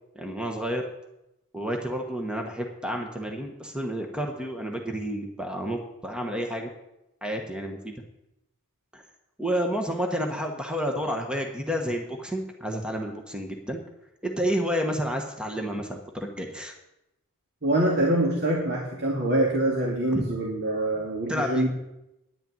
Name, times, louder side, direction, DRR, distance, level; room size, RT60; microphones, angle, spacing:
voice 1, 0.1-0.8 1.5-6.7 7.2-7.9 8.9-9.0 9.4-13.8 14.2-16.7 20.1-20.3 21.3-21.7, equal, 5° right, 2 dB, 1.1 m, -30 dB
voice 2, 17.6-21.7, right 1 dB, 50° right, -2 dB, 2.3 m, -25 dB
10.5 x 6.7 x 9.2 m, 0.90 s
head